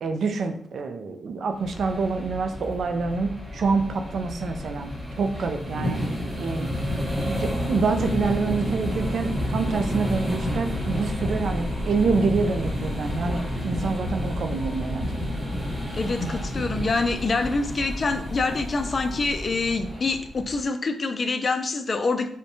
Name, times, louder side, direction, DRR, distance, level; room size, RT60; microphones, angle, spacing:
voice 1, 0.0-4.9 5.2-6.0 6.4-6.7 7.3-15.2, right 4 dB, 70° right, 6 dB, 0.3 m, -26 dB
sound 1, 1.6-20.6, left 1 dB, 10° right, 0.9 m, -30 dB
voice 2, 15.9-22.3, left 3 dB, 45° left, 7 dB, 0.3 m, -26 dB
2.6 x 2.1 x 2.6 m, 0.65 s
cardioid pair, 70°, 0 cm